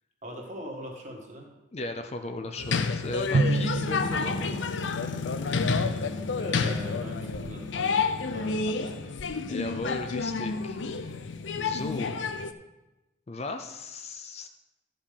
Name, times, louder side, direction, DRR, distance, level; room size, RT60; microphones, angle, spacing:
voice 1, 0.2-1.5 6.3-9.1 11.7-11.8, equal, 40° right, 0 dB, 1.6 m, -41 dB
voice 2, 1.7-4.6 9.5-11.2 11.6-12.2 13.3-14.5, left 2 dB, 35° left, 6 dB, 0.5 m, -36 dB
sound 1, 2.6-12.5, left 4 dB, 85° left, 0.6 m, -29 dB
Drum, 3.3-5.5, right 2 dB, 80° right, 0.5 m, -29 dB
12.5 x 5.2 x 5.2 m, 1.0 s
head